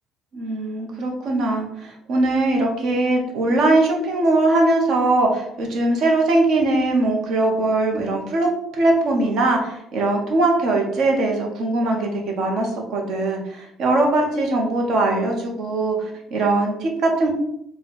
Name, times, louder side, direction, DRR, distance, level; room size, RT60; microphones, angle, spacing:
voice 1, 0.3-17.3, right 2 dB, 55° right, 1 dB, 1.0 m, -21 dB
4.1 x 2.3 x 4.1 m, 0.76 s
cardioid pair, 150°, 0 cm